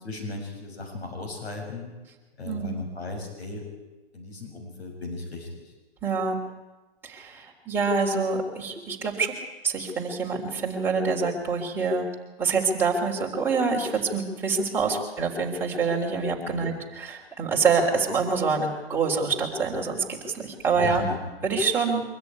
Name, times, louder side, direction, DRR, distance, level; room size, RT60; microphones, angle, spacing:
voice 1, 0.0-1.9 2.4-3.6 4.1-5.7 16.5-16.8 20.7-21.2, left 3 dB, 80° left, 2 dB, 6.8 m, -36 dB
voice 2, 6.0-6.4 7.0-9.3 9.6-12.1 12.4-21.1 21.4-22.0, right 4 dB, 5° right, -3 dB, 3.6 m, -26 dB
24.5 x 14.0 x 9.7 m, 1.2 s
hypercardioid pair, 150°, 32 cm